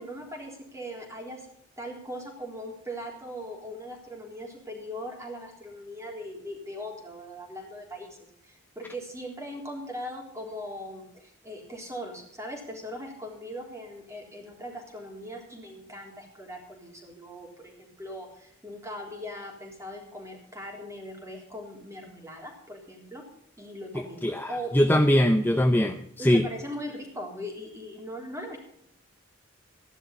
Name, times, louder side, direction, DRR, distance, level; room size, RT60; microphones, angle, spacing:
voice 1, 0.0-1.5 1.8-8.2 8.4-23.2 23.6-24.7 26.2-28.6, equal, 15° right, 0 dB, 3.6 m, -40 dB
voice 2, 24.2-26.4, equal, 10° left, 6 dB, 0.6 m, -22 dB
14.0 x 11.0 x 5.3 m, 0.73 s
head